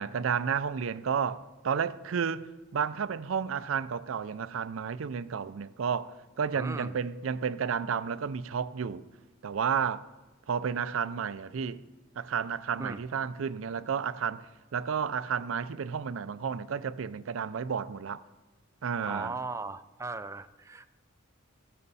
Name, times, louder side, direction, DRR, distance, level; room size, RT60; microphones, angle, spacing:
voice 1, 0.0-9.0 9.4-10.1 10.5-11.8 12.2-14.5 14.7-18.2 18.8-19.3, right 6 dB, 85° right, 0.4 m, -32 dB
voice 2, 6.5-7.0 12.8-13.0 19.1-20.9, right 3 dB, 15° right, 0.3 m, -38 dB
15.0 x 12.5 x 4.1 m
head